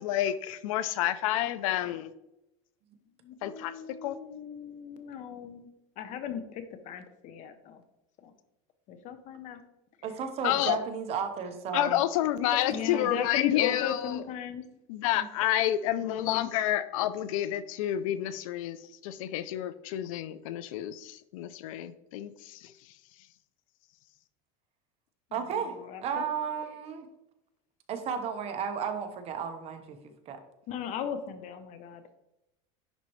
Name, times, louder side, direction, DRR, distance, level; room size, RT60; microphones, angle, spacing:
voice 1, 0.0-2.1 3.4-3.7 4.0-4.2 10.4-10.8 11.7-14.2 14.9-18.8 19.0-22.7, left 13 dB, 85° left, 14 dB, 0.5 m, -29 dB
voice 2, 3.2-5.7 6.0-7.8 8.2-8.3 8.9-9.6 12.7-14.6 16.0-16.5 25.8-26.2 30.7-32.2, left 8 dB, 45° left, 10 dB, 0.8 m, -37 dB
voice 3, 10.0-12.0 12.7-13.1 15.1-15.3 25.3-27.1 27.9-30.4, right 7 dB, 35° right, 7 dB, 0.9 m, -34 dB
10.5 x 4.2 x 3.1 m, 0.90 s
supercardioid pair, 145°, 17 cm